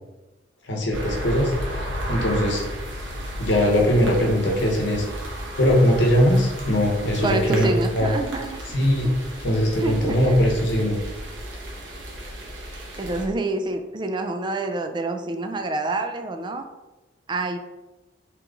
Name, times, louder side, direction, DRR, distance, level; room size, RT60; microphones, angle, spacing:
voice 1, 0.7-1.8 2.1-2.6 3.4-5.1 5.6-8.1 8.7-9.1 9.4-11.0, equal, 70° left, 0 dB, 0.9 m, -20 dB
sound 1, 0.9-13.3, equal, 70° right, 0.9 m, -33 dB
voice 2, 7.2-8.7 9.0-9.2 9.8-10.4 13.0-16.6 17.3-17.6, right 2 dB, 25° right, 6 dB, 0.3 m, -27 dB
3.6 x 3.0 x 3.8 m, 1.1 s
head